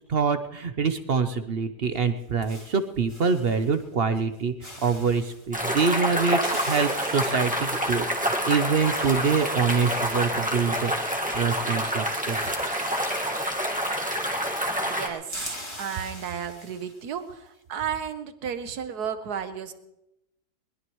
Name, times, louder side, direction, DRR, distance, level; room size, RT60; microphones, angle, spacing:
voice 1, 0.1-12.5, right 5 dB, 50° right, 9 dB, 0.7 m, -25 dB
sound 1, 1.9-3.9 4.2-4.4 4.6-5.5 6.1-11.5 11.8-11.9 12.1-14.5 14.8-17.2, left 1 dB, 15° left, 2.3 m, -45 dB
sound 2, 5.5-15.1, equal, 5° right, 1.5 m, -27 dB
voice 2, 14.5-19.7, right 8 dB, 70° right, 10 dB, 1.6 m, -33 dB
21.0 x 20.5 x 3.1 m, 0.87 s
omnidirectional pair, 1.8 m